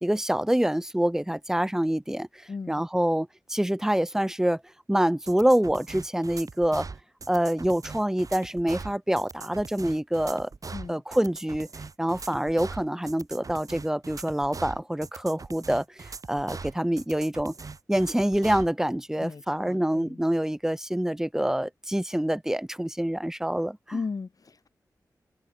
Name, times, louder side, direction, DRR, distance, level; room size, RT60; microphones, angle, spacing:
voice 1, 0.0-4.6 4.9-6.9 7.3-10.5 10.9-11.7 12.0-17.5 17.9-24.0, right 1 dB, 5° right, 1.0 m, -26 dB
voice 2, 2.5-2.8 10.7-11.0 19.2-20.2 23.9-24.7, left 4 dB, 55° left, 3.8 m, -36 dB
sound 1, 5.3-18.7, right 4 dB, 55° right, 3.1 m, -41 dB
wide cardioid pair, 90°, 7 cm